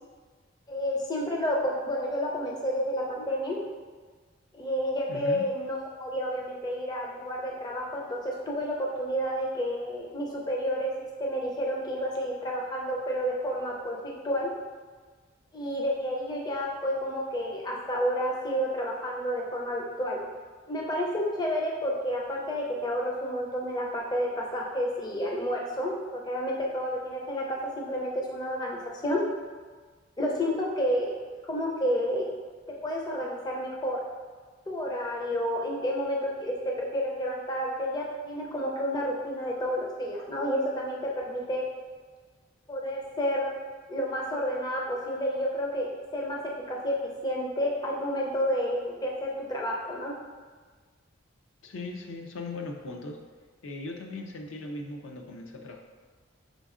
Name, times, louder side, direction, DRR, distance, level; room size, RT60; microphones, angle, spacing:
voice 1, 0.7-3.6 4.5-10.9 11.2-14.5 15.5-20.2 20.7-29.2 30.2-31.1 31.5-32.3 32.7-34.0 34.7-41.6 42.7-43.5 43.9-46.4 46.7-50.1, equal, 20° left, -2 dB, 0.5 m, -30 dB
voice 2, 5.1-5.5 51.6-53.2 53.6-55.8, left 2 dB, 75° left, 3 dB, 0.5 m, -38 dB
5.1 x 3.4 x 2.4 m, 1.5 s
head